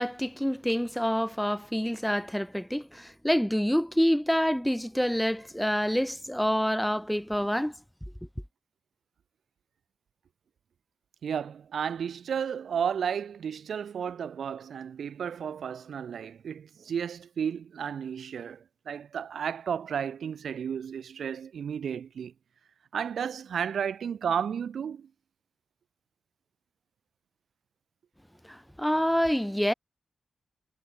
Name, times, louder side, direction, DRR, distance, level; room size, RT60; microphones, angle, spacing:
voice 1, 0.0-7.7 28.5-29.7, equal, ahead, 1.2 m, -27 dB
voice 2, 11.2-22.3 22.9-25.1, right 7 dB, 75° right, 2.6 m, -33 dB
wide cardioid pair, 140°, 0 cm